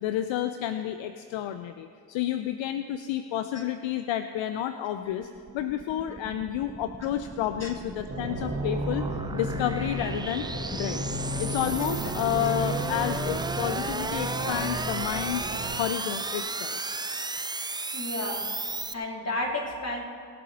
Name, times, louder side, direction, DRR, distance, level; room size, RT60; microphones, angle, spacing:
voice 1, 0.0-5.3 5.5-10.5 10.7-11.0 11.4-15.5 15.7-16.8, left 11 dB, 65° left, 9 dB, 0.7 m, -30 dB
sound 1, 5.0-18.9, right 3 dB, 10° right, 0.5 m, -35 dB
sound 2, 8.1-15.8, right 1 dB, 25° right, 3.1 m, -33 dB
voice 2, 17.9-18.5 18.9-20.0, left 1 dB, 30° left, -1 dB, 3.4 m, -32 dB
23.0 x 7.7 x 4.1 m, 2.4 s
hypercardioid pair, 50°, 49 cm